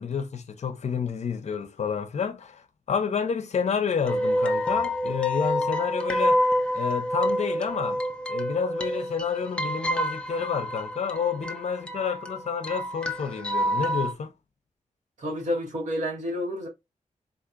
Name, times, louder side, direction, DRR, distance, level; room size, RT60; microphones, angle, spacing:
voice 1, 0.0-2.6 2.9-6.4 6.7-8.0 8.3-14.3, left 6 dB, 55° left, 0.6 m, -29 dB
sound 1, 4.1-14.1, equal, 10° left, 0.4 m, -28 dB
voice 2, 15.2-16.7, equal, 70° right, 1.5 m, -29 dB
3.8 x 2.8 x 2.4 m
wide cardioid pair, 175°, 13 cm